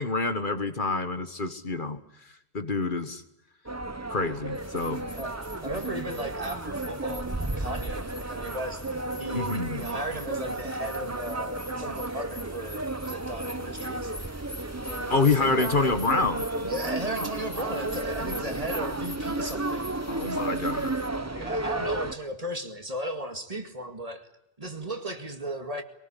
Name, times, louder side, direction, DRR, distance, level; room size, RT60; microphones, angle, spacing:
voice 1, 0.0-2.0 2.5-3.2 4.1-5.0 9.3-9.9 15.1-16.4 20.1-20.9, left 3 dB, 55° left, 9 dB, 1.6 m, -27 dB
sound 1, 3.7-22.2, right 2 dB, 15° right, 0.9 m, -33 dB
sound 2, 4.5-21.1, left 1 dB, 25° left, 3.1 m, -46 dB
voice 2, 5.2-14.3 14.8-15.8 16.6-20.6 21.2-24.3 24.6-25.8, right 1 dB, 35° right, 6 dB, 2.2 m, -36 dB
23.0 x 19.0 x 10.0 m, 0.86 s
omnidirectional pair, 1.1 m